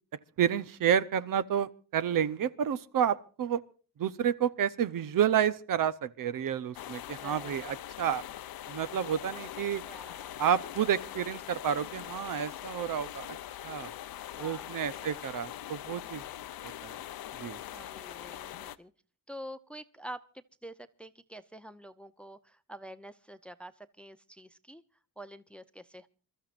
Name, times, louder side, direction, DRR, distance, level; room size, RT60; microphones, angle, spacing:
voice 1, 0.4-3.6 4.0-8.2 8.7-9.8 10.4-13.4 13.6-13.9 14.4-16.2 16.8-17.0 17.4-17.6, right 9 dB, 60° right, 0.8 m, -30 dB
sound 1, 6.7-18.8, left 12 dB, 70° left, 0.8 m, -42 dB
voice 2, 7.2-7.7 9.8-10.4 14.3-15.2 17.7-18.9 19.3-24.8 25.2-26.1, right 1 dB, 5° left, 0.6 m, -47 dB
28.0 x 13.5 x 2.5 m
cardioid pair, 135°, 37 cm